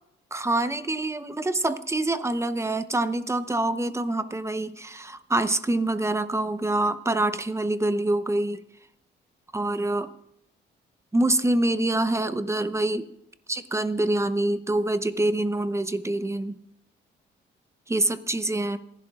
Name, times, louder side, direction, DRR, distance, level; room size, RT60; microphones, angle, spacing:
voice 1, 0.3-8.6 9.5-10.1 11.1-13.1 13.5-16.6 17.9-18.8, right 2 dB, 15° right, 11 dB, 0.9 m, -25 dB
27.5 x 11.0 x 2.5 m, 0.78 s
cardioid pair, 90°, 20 cm